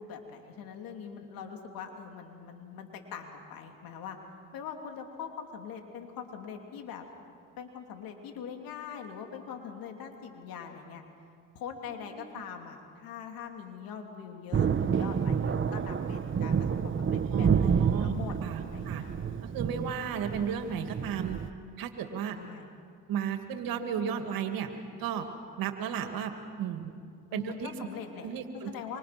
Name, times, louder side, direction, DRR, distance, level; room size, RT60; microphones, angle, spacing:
voice 1, 0.0-4.2 4.5-7.1 7.6-11.0 11.5-18.4 18.7-19.1 22.3-22.7 27.3-28.3 28.6-29.0, left 7 dB, 75° left, 3 dB, 3.2 m, -42 dB
Thunder, 14.5-21.5, right 7 dB, 35° right, 1.2 m, -29 dB
voice 2, 17.3-18.1 18.4-19.0 19.4-21.4 21.8-22.4 23.1-24.7 25.0-25.3 25.6-26.3 26.6-27.0 27.3-27.7 28.2-28.7, right 8 dB, 75° right, 6 dB, 2.5 m, -34 dB
26.0 x 25.5 x 6.1 m, 2.2 s
supercardioid pair, 75°, 35 cm